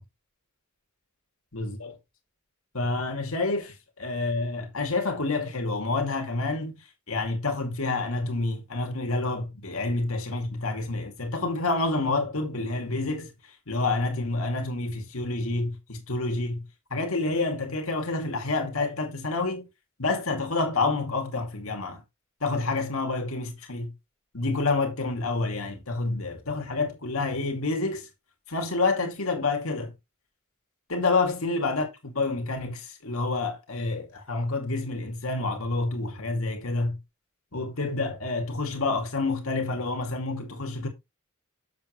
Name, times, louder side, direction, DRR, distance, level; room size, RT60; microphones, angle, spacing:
voice 1, 1.5-2.0 2.7-6.7 7.1-13.3 13.7-16.7 16.9-19.6 20.0-22.0 22.4-23.9 24.3-28.1 28.5-29.9 30.9-37.0 37.5-40.9, left 3 dB, 70° left, 2.4 m, -28 dB
7.5 x 7.4 x 3.1 m
head